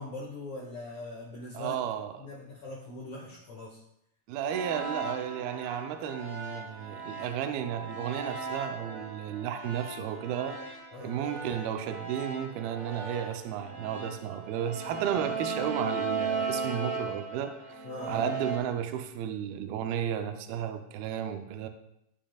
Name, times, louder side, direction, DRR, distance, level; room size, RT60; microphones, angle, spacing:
voice 1, 0.0-1.8 2.2-3.8 10.9-11.2 17.8-18.3, left 2 dB, 55° left, -6 dB, 2.3 m, -41 dB
voice 2, 1.5-2.1 4.3-21.7, right 9 dB, 85° right, 6 dB, 2.1 m, -33 dB
sound 1, 4.5-18.6, right 4 dB, 55° right, 2.9 m, -37 dB
14.0 x 7.3 x 2.3 m, 0.78 s
omnidirectional pair, 5.2 m